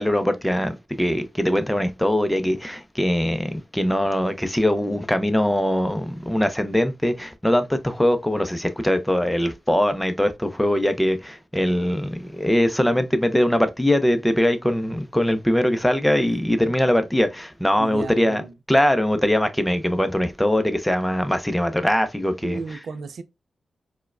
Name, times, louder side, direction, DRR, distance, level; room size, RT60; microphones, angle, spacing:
voice 1, 0.0-18.4 18.7-22.6, left 1 dB, 5° left, 0.5 m, -22 dB
voice 2, 17.8-18.5 22.4-23.2, right 5 dB, 75° right, 0.4 m, -34 dB
4.5 x 2.1 x 2.3 m
wide cardioid pair, 100°, 0 cm